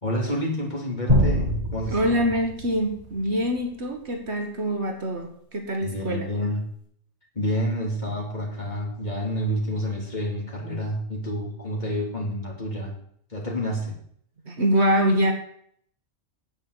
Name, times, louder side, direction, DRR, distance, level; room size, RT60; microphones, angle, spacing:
voice 1, 0.0-2.2 5.8-6.6 7.3-13.0 13.3-14.0, equal, 35° left, -2 dB, 3.3 m, -29 dB
sound 1, 1.1-3.6, equal, 25° right, 7.2 m, -25 dB
voice 2, 1.9-6.3 8.1-8.2 14.5-15.3, equal, 55° right, 4 dB, 1.7 m, -24 dB
9.8 x 8.3 x 8.0 m, 0.66 s
omnidirectional pair, 1.4 m